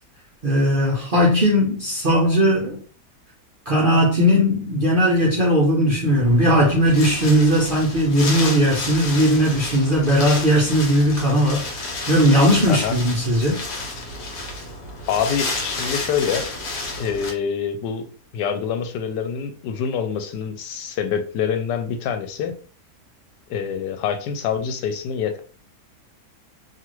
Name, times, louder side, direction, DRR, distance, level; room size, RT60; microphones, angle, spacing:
voice 1, 0.4-2.8 3.7-13.6, equal, 55° right, 0.5 m, -18 dB
Wind, 6.1-17.3, left 2 dB, 65° left, 1.2 m, -31 dB
voice 2, 15.1-16.5 17.0-18.1 18.3-22.6 23.5-25.4, left 7 dB, 85° left, 1.2 m, -25 dB
2.7 x 2.4 x 3.0 m
omnidirectional pair, 1.8 m